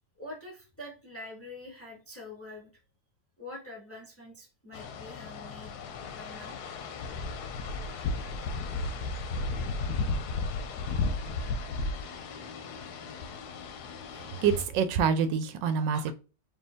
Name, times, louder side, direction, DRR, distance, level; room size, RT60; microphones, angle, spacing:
voice 1, 0.2-2.7 3.4-5.7 6.1-6.6, left 1 dB, 10° left, 0.8 m, -45 dB
sound 1, 4.7-14.6, left 3 dB, 70° left, 1.1 m, -34 dB
voice 2, 14.4-16.1, right 6 dB, 85° right, 1.3 m, -26 dB
4.4 x 2.8 x 3.6 m
omnidirectional pair, 1.9 m